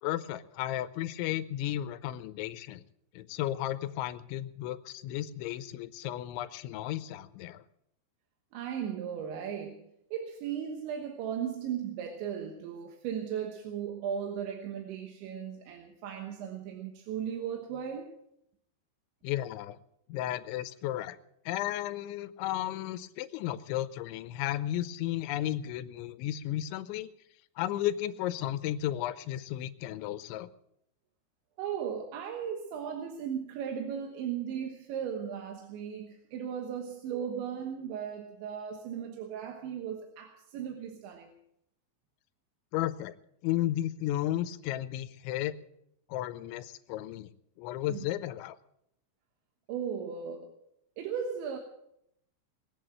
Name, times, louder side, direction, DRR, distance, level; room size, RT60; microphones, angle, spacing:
voice 1, 0.0-2.8 3.1-7.6 19.2-19.8 20.1-21.2 21.5-27.1 27.6-30.5 42.7-43.1 43.4-45.6 46.1-47.3 47.6-48.6, left 13 dB, 80° left, 13 dB, 3.0 m, -34 dB
voice 2, 8.5-9.8 10.1-18.1 31.6-41.3 47.9-48.1 49.7-50.6 51.0-51.6, right 8 dB, 75° right, 3 dB, 3.5 m, -36 dB
21.0 x 8.5 x 7.7 m, 0.76 s
omnidirectional pair, 5.4 m